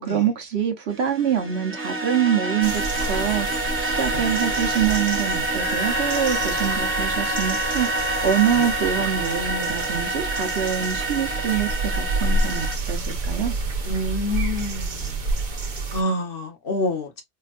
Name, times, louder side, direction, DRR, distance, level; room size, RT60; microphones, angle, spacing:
voice 1, 0.0-13.5, right 9 dB, 75° right, 1.1 m, -25 dB
sound 1, 0.9-12.7, right 2 dB, 15° right, 0.7 m, -27 dB
sound 2, 2.6-16.0, right 2 dB, 50° right, 0.9 m, -29 dB
Harmonica, 5.5-10.3, left 3 dB, 25° left, 0.6 m, -34 dB
voice 2, 13.8-15.2 15.9-17.2, left 1 dB, 60° left, 1.1 m, -27 dB
4.4 x 2.2 x 2.4 m
omnidirectional pair, 1.1 m